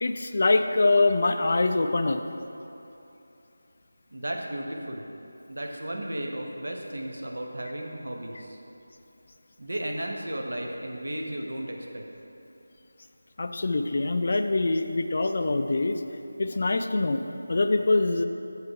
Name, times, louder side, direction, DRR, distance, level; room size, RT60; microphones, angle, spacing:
voice 1, 0.0-2.2 13.4-16.0 16.4-17.2 17.5-18.2, left 2 dB, 50° left, 7 dB, 0.3 m, -24 dB
voice 2, 4.1-5.1 5.5-8.6 9.6-12.0, right 1 dB, 75° right, 1 dB, 0.9 m, -34 dB
6.4 x 4.8 x 4.8 m, 2.9 s
figure-of-eight pair, 165°, 0 cm